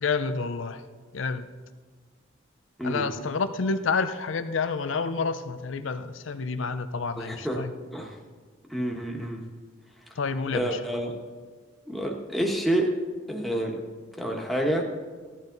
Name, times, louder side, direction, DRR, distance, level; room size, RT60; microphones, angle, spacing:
voice 1, 0.0-0.8 1.1-1.5 2.8-7.7 10.2-10.8, left 4 dB, 80° left, 10 dB, 0.6 m, -29 dB
voice 2, 7.2-7.6 7.9-8.1 8.7-9.4 10.5-11.1 11.9-12.9 13.3-13.8 14.2-14.8, right 1 dB, ahead, -1 dB, 1.4 m, -28 dB
15.5 x 11.0 x 4.0 m, 1.5 s
head